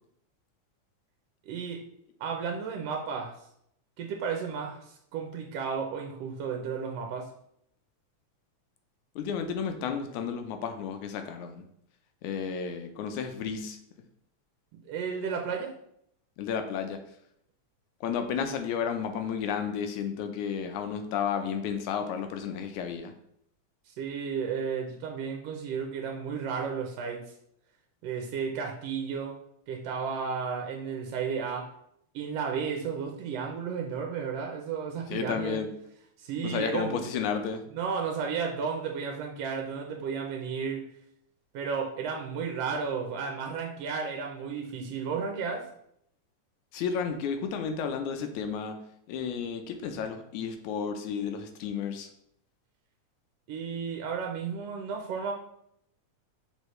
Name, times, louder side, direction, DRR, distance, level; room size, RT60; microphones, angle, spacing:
voice 1, 1.5-1.8 2.2-3.3 4.0-7.3 14.8-15.7 23.9-27.2 28.0-29.4 29.7-31.7 32.1-35.6 36.2-37.0 37.7-40.9 41.5-45.7 53.5-55.3, right 6 dB, 75° right, 2 dB, 1.6 m, -33 dB
voice 2, 9.2-11.6 12.2-13.8 16.4-17.0 18.0-23.1 35.1-35.7 36.4-37.6 46.7-48.8 49.1-52.1, left 7 dB, 85° left, 6 dB, 2.1 m, -32 dB
6.7 x 4.5 x 3.1 m, 0.72 s
omnidirectional pair, 3.4 m